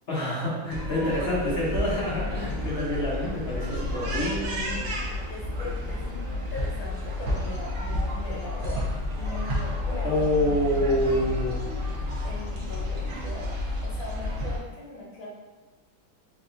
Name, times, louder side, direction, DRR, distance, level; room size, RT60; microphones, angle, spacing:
voice 1, 0.1-4.8 10.0-11.6, left 1 dB, 40° left, -7 dB, 0.9 m, -27 dB
sound 1, 0.7-14.6, left 1 dB, 75° right, 0.6 m, -31 dB
voice 2, 5.3-10.2 11.0-11.2 12.2-13.5 13.8-15.3, left 3 dB, 75° left, -5 dB, 1.5 m, -40 dB
3.7 x 3.3 x 2.6 m, 1.2 s
omnidirectional pair, 2.1 m